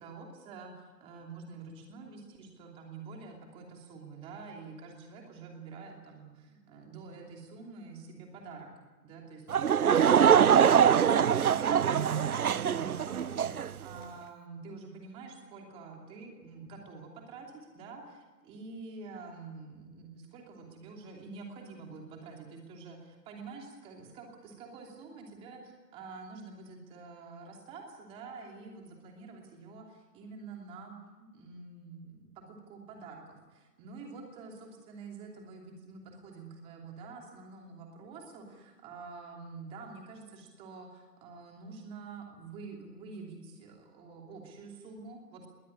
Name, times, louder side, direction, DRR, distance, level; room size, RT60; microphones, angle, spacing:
voice 1, 0.0-8.7 9.0-10.6 10.9-45.5, right 4 dB, 10° right, 1 dB, 2.9 m, -47 dB
Laughter / Crowd, 9.5-13.7, right 8 dB, 65° right, 0.7 m, -23 dB
21.5 x 18.0 x 9.7 m, 1.2 s
figure-of-eight pair, 150°, 48 cm